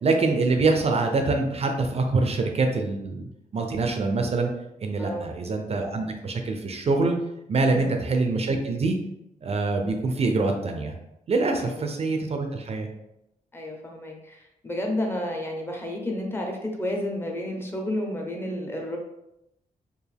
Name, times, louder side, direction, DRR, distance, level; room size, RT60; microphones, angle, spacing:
voice 1, 0.0-4.5 4.8-7.1 7.5-9.0 9.4-10.9 11.3-12.9, right 3 dB, 45° right, 4 dB, 0.4 m, -25 dB
voice 2, 5.0-5.3 7.6-8.0 11.6-11.9 13.5-19.0, left 1 dB, 15° left, 1 dB, 0.6 m, -31 dB
4.5 x 2.5 x 3.3 m, 0.86 s
wide cardioid pair, 160°, 15 cm